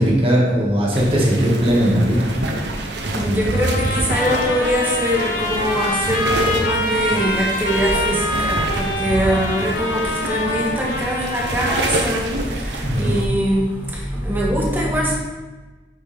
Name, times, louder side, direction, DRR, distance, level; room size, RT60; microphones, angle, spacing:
voice 1, 0.0-2.3 12.8-13.1, equal, 30° right, -4 dB, 1.9 m, -18 dB
sound 1, 0.9-13.3, right 1 dB, 80° right, 0.9 m, -27 dB
voice 2, 3.1-15.1, equal, 10° right, -4 dB, 1.6 m, -22 dB
Trumpet, 3.5-12.2, left 1 dB, 50° left, 1.3 m, -25 dB
8.4 x 6.2 x 3.5 m, 1.2 s
head